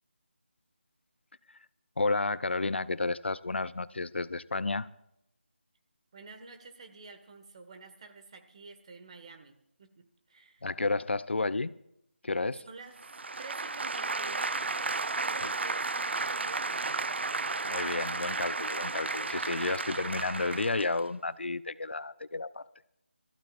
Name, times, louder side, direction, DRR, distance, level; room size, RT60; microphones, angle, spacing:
voice 1, 2.0-4.9 10.6-11.7 12.2-12.6 15.4-15.5 17.7-22.7, left 3 dB, 70° left, 16 dB, 0.6 m, -31 dB
voice 2, 6.1-10.7 12.6-13.1 13.4-17.6 19.7-20.0, right 4 dB, 35° right, 6 dB, 1.6 m, -50 dB
sound 1, 13.0-21.0, right 3 dB, 70° right, 0.5 m, -33 dB
26.5 x 15.0 x 2.5 m, 0.78 s
figure-of-eight pair, 165°, 6 cm